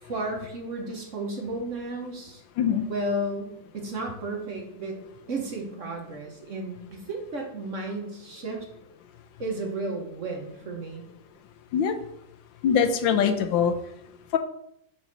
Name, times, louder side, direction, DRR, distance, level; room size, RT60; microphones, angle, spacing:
voice 1, 0.0-2.4 2.9-5.0 5.3-8.6 9.4-11.0, right 2 dB, 45° right, 1 dB, 1.2 m, -33 dB
voice 2, 12.6-13.7 14.3-14.4, left 7 dB, 85° left, 7 dB, 1.4 m, -22 dB
5.1 x 4.7 x 5.4 m, 0.76 s
omnidirectional pair, 2.0 m